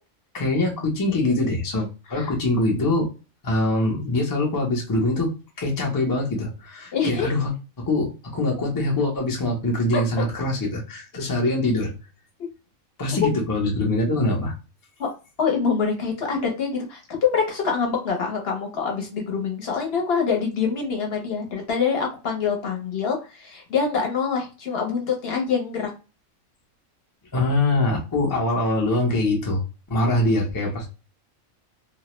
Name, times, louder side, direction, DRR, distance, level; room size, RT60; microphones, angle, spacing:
voice 1, 0.3-3.1 3.4-7.5 7.8-11.9 13.0-14.5 27.3-29.6 29.9-30.9, left 2 dB, 30° left, 0 dB, 0.4 m, -23 dB
voice 2, 6.9-7.3 9.9-10.0 13.2-13.3 15.0-15.1 15.4-25.9, left 6 dB, 55° left, 1 dB, 0.8 m, -25 dB
2.3 x 2.0 x 2.9 m, 0.31 s
omnidirectional pair, 1.4 m